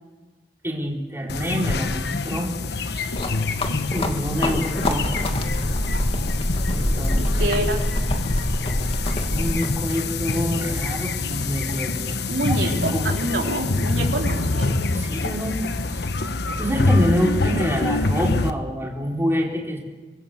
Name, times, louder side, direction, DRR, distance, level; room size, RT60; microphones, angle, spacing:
voice 1, 0.6-3.2 3.9-5.1 6.7-7.6 9.3-13.2 14.9-15.6 16.6-19.8, equal, 15° right, -1 dB, 4.0 m, -27 dB
sound 1, 1.3-18.5, left 3 dB, 70° left, 1.2 m, -26 dB
sound 2, 3.1-9.7, left 1 dB, 35° left, 2.3 m, -25 dB
voice 2, 7.2-7.8 12.3-14.8, right 1 dB, 80° right, 0 dB, 3.9 m, -26 dB
25.5 x 20.0 x 8.2 m, 1.3 s
head